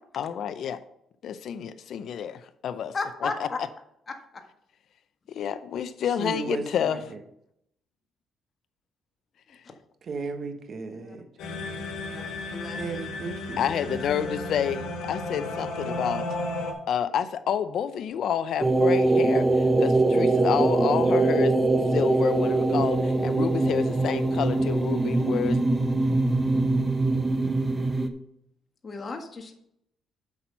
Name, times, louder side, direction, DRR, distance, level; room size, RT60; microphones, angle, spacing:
voice 1, 0.2-0.8 1.2-2.9 3.2-3.5 5.3-7.0 13.6-16.3 16.9-21.6 21.9-25.6, left 8 dB, 70° left, 11 dB, 0.6 m, -29 dB
voice 2, 2.9-3.6 10.9-11.2 12.1-13.1 28.8-29.5, left 4 dB, 35° left, 3 dB, 1.7 m, -34 dB
voice 3, 6.2-7.2 10.1-11.3 12.8-13.6 13.8-14.3, right 4 dB, 50° right, 7 dB, 1.4 m, -35 dB
sound 1, 11.4-16.7, left 2 dB, 85° left, 2.2 m, -34 dB
sound 2, 18.6-28.1, right 2 dB, 20° right, 0.9 m, -23 dB
8.4 x 6.1 x 5.5 m, 0.75 s
cardioid pair, 90°, 0 cm